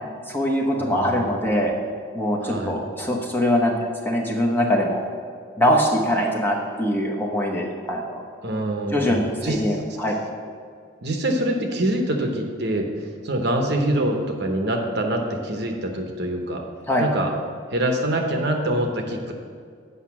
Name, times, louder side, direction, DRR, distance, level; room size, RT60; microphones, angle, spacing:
voice 1, 0.3-1.7 2.1-3.7 4.0-5.0 5.6-8.2 8.9-10.1 16.9-17.0, equal, 10° left, -2 dB, 0.9 m, -22 dB
voice 2, 0.8-1.2 2.4-2.8 8.4-9.6 11.0-12.9 13.2-16.6 17.0-17.3 17.7-19.3, right 1 dB, 55° right, 3 dB, 0.9 m, -25 dB
8.1 x 5.7 x 6.0 m, 2.2 s
head